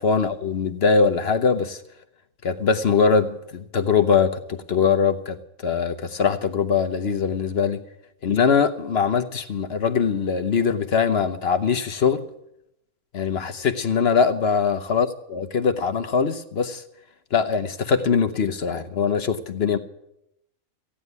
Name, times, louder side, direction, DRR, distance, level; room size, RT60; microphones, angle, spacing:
voice 1, 0.0-1.8 2.4-5.4 5.6-7.8 8.2-12.2 13.1-16.8 17.3-19.8, left 6 dB, 50° left, 9 dB, 1.0 m, -22 dB
14.5 x 10.0 x 9.5 m, 0.82 s
omnidirectional pair, 1.6 m